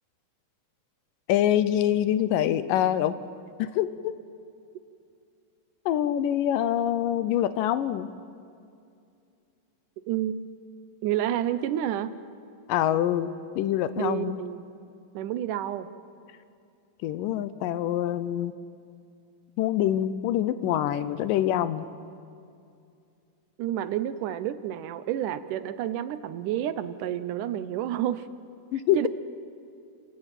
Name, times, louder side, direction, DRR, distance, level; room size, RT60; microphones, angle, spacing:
voice 1, 1.3-3.1 3.6-4.1 5.9-8.1 12.7-14.4 17.0-18.5 19.6-21.9 28.7-29.0, left 11 dB, 80° left, 13 dB, 2.3 m, -25 dB
voice 2, 10.1-10.5 11.0-12.2 14.0-14.7 15.1-15.9 23.6-28.2 29.0-29.1, right 11 dB, 75° right, 13 dB, 2.2 m, -29 dB
28.5 x 17.0 x 9.0 m, 2.5 s
omnidirectional pair, 4.0 m